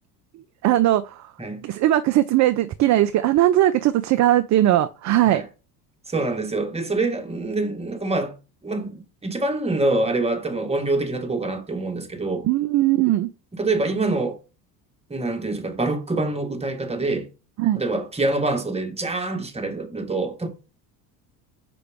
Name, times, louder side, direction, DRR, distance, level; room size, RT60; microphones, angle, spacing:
voice 1, 0.6-1.3 1.6-5.4 12.4-13.3 17.6-17.8, right 14 dB, 35° right, 0.4 m, -19 dB
voice 2, 6.1-8.3 8.6-12.4 13.6-14.4 15.1-17.3 17.8-20.5, right 2 dB, 10° right, 1.4 m, -25 dB
6.0 x 4.7 x 3.5 m
hypercardioid pair, 80°, 49 cm